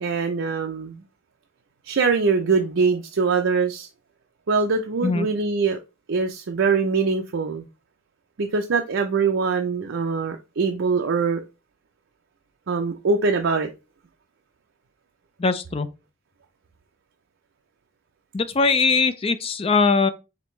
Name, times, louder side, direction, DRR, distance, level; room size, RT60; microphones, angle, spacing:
voice 1, 0.0-1.0 1.8-3.9 4.5-5.8 6.1-7.7 8.4-11.4 12.7-13.7, right 4 dB, 65° right, 0.5 m, -23 dB
voice 2, 15.4-15.9 18.3-20.1, left 4 dB, 30° left, 0.4 m, -21 dB
5.1 x 3.3 x 3.0 m
head